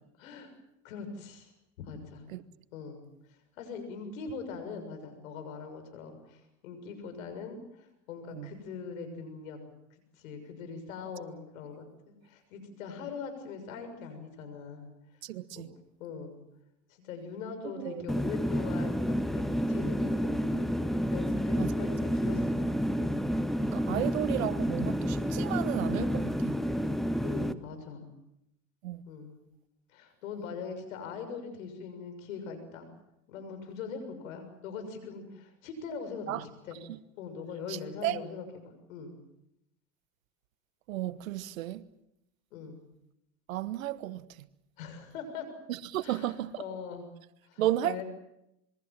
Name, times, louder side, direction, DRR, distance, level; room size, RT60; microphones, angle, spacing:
voice 1, 0.2-0.5 0.8-1.5 1.8-2.2 2.7-3.0 3.6-7.6 8.1-9.6 10.2-11.8 12.2-14.9 15.5-15.7 16.0-16.4 16.9-20.8 21.1-22.7 23.9-24.1 27.2-28.1 29.0-29.4 29.9-32.9 33.3-36.8 37.2-39.1 42.5-42.8 44.8-45.5 46.0-47.1 47.5-48.0, left 5 dB, 80° left, 6.8 m, -41 dB
voice 2, 15.2-15.7 17.8-18.0 21.6-21.7 23.6-26.6 28.8-29.0 36.3-36.4 36.9-37.0 37.7-38.2 40.9-41.8 43.5-44.2 45.7-46.6 47.6-48.0, right 13 dB, 85° right, 1.2 m, -33 dB
sound 1, 18.1-27.5, equal, ahead, 1.5 m, -30 dB
27.0 x 22.5 x 7.5 m
hypercardioid pair, 80°, 40 cm